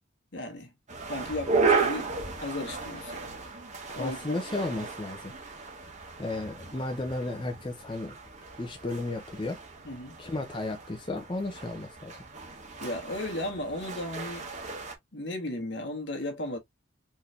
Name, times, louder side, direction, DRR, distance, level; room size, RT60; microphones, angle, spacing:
voice 1, 0.3-0.7 1.1-3.3 4.0-4.4 9.8-10.2 12.8-14.5 15.1-16.6, left 1 dB, 65° left, 1.7 m, -35 dB
sound 1, 0.9-14.9, right 4 dB, 40° right, 1.4 m, -34 dB
voice 2, 4.0-5.3 6.2-8.2 8.6-9.6 10.2-12.1, left 2 dB, 25° left, 0.7 m, -34 dB
4.5 x 3.4 x 2.7 m
head